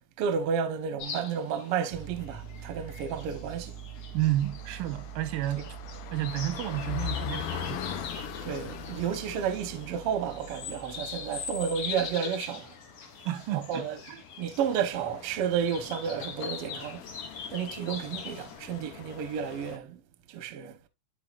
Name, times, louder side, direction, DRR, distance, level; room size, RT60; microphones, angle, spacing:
voice 1, 0.2-3.8 5.6-5.7 8.4-12.8 13.5-14.0 14.4-17.1 17.5-20.0 20.3-20.8, right 7 dB, 70° right, 1.4 m, -31 dB
sound 1, 1.0-18.6, left 6 dB, 55° left, 2.1 m, -43 dB
Piano, 1.9-12.2, right 12 dB, 25° right, 0.7 m, -45 dB
voice 2, 4.1-5.8 6.1-7.9 13.3-14.2, right 14 dB, 90° right, 2.6 m, -31 dB
sound 2, 4.4-19.8, left 9 dB, 75° left, 2.3 m, -42 dB
12.0 x 4.2 x 2.4 m
omnidirectional pair, 3.8 m